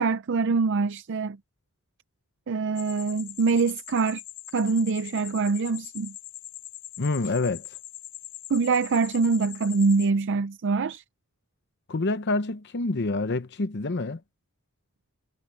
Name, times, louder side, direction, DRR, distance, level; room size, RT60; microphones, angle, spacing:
voice 1, 0.0-1.4 2.5-4.2 4.5-6.2 8.5-11.0, right 4 dB, 55° right, 0.5 m, -24 dB
sound 1, 2.8-10.1, left 16 dB, 85° left, 5.4 m, -42 dB
voice 2, 7.0-7.7 11.9-14.2, left 3 dB, 50° left, 0.8 m, -27 dB
head